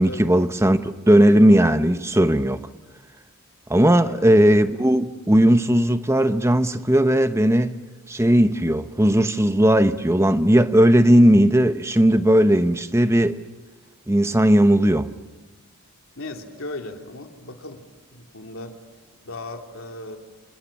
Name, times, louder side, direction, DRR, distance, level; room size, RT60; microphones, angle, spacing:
voice 1, 0.0-2.6 3.7-7.8 8.1-13.4 14.1-15.1, right 1 dB, 10° right, 0.9 m, -17 dB
voice 2, 4.0-4.8 16.2-17.8 18.1-18.7 19.2-20.2, left 2 dB, 65° left, 3.2 m, -37 dB
28.5 x 28.0 x 7.4 m
head